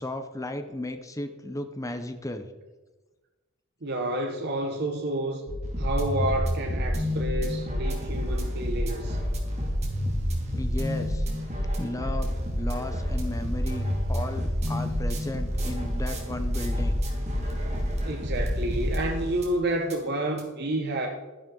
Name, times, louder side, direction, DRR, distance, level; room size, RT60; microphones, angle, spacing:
voice 1, 0.0-2.5 10.5-11.3 11.7-12.3 12.6-17.0, left 1 dB, 15° left, 8 dB, 0.7 m, -34 dB
voice 2, 3.8-5.4 5.8-9.2 18.0-21.1, right 1 dB, 50° right, 1 dB, 1.1 m, -29 dB
sound 1, 5.5-19.6 19.9-20.0 20.4-20.5, equal, 30° right, 2.4 m, -28 dB
12.5 x 10.5 x 3.9 m, 1.2 s
head